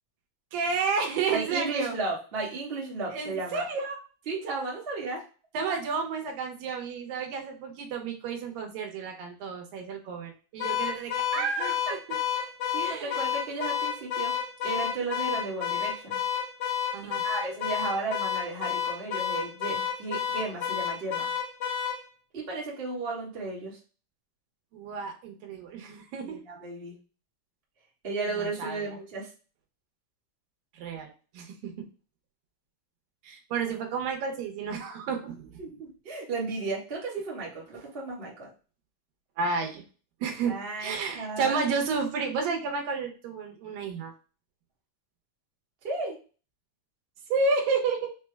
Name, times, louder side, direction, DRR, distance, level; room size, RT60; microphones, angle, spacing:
voice 1, 0.5-1.9 3.1-4.0 5.5-12.0 12.8-13.2 16.9-17.2 24.7-26.4 28.3-28.9 30.7-31.9 33.2-35.6 39.4-39.8 40.2-44.1 47.3-48.1, right 4 dB, 85° right, 2 dB, 2.7 m, -31 dB
voice 2, 1.3-3.6 4.3-5.2 11.4-12.0 12.7-14.3 14.6-16.2 17.0-21.3 22.3-23.8 26.2-26.9 28.0-29.3 35.6-38.5 40.5-41.6 45.8-46.2, right 3 dB, 45° right, -5 dB, 0.7 m, -34 dB
Car / Alarm, 10.6-22.0, left 8 dB, 85° left, 1.3 m, -30 dB
5.9 x 2.2 x 3.3 m, 0.36 s
omnidirectional pair, 4.0 m